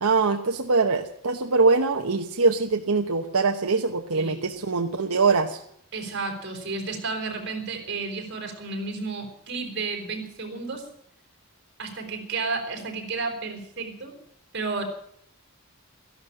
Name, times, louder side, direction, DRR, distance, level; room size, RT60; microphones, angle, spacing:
voice 1, 0.0-5.6, right 4 dB, 85° right, 5 dB, 1.1 m, -23 dB
voice 2, 5.9-10.9 11.8-14.1 14.5-14.8, right 4 dB, 50° right, 3 dB, 4.4 m, -32 dB
14.0 x 11.5 x 8.8 m, 0.69 s
head